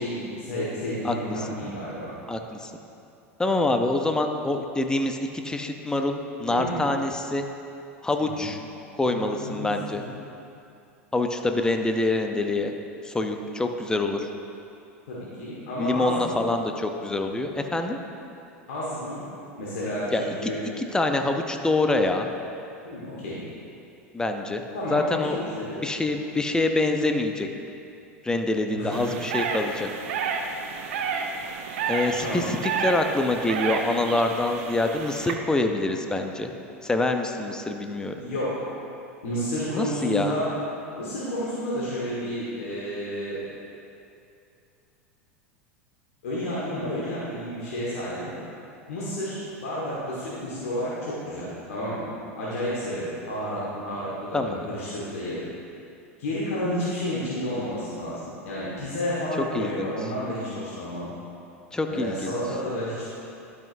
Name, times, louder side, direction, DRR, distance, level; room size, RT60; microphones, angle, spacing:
voice 1, 0.0-2.1 6.5-6.8 8.2-8.4 9.0-10.1 15.1-16.4 18.7-19.2 19.6-20.6 22.8-23.4 24.7-26.0 28.7-29.1 32.2-32.5 38.1-38.7 39.2-40.5 41.0-43.4 46.2-48.3 48.9-52.1 52.4-55.4 56.2-61.1 61.9-63.1, equal, 70° left, -8 dB, 1.6 m, -31 dB
voice 2, 2.3-2.7 3.4-7.4 8.0-8.6 9.0-10.0 11.1-12.7 13.0-14.3 15.8-18.0 20.1-20.2 20.8-22.3 24.1-24.6 24.9-25.4 25.8-27.5 28.2-29.9 31.9-36.5 36.8-38.1 39.7-40.4 54.3-54.7 59.5-59.9 61.7-62.3, left 2 dB, 10° left, 5 dB, 0.6 m, -25 dB
sound 1, 28.9-35.3, right 5 dB, 65° right, 0.6 m, -30 dB
12.0 x 5.9 x 2.6 m, 2.7 s
hypercardioid pair, 90°, 7 cm